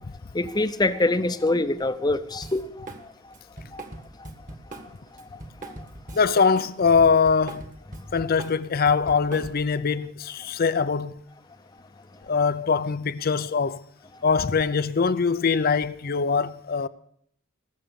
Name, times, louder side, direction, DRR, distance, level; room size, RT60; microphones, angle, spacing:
voice 1, 0.3-2.7 3.7-3.8, left 2 dB, 20° left, 0.8 m, -24 dB
Drum kit, 2.4-3.0 3.3-6.7 7.0-9.8, right 2 dB, 40° right, 1.7 m, -41 dB
voice 2, 6.1-7.6 8.1-11.1 12.3-13.8 14.2-16.9, left 5 dB, 50° left, 0.6 m, -22 dB
19.0 x 7.6 x 6.9 m
head